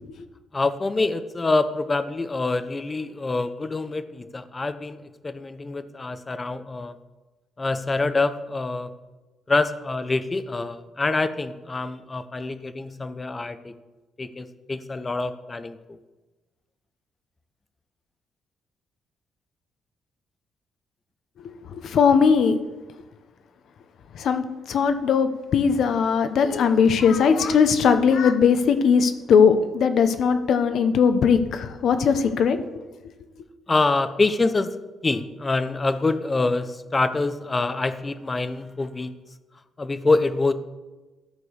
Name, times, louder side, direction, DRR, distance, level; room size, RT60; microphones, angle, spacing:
voice 1, 0.5-5.0 5.2-6.9 7.6-8.9 9.5-13.7 14.2-15.8 33.7-34.8 35.0-39.1 39.8-40.5, left 3 dB, 25° left, 11 dB, 0.7 m, -25 dB
voice 2, 21.7-22.6 24.1-24.4 24.7-32.6, left 6 dB, 65° left, 9 dB, 0.9 m, -19 dB
13.5 x 4.6 x 6.4 m, 1.2 s
cardioid pair, 90°, 0 cm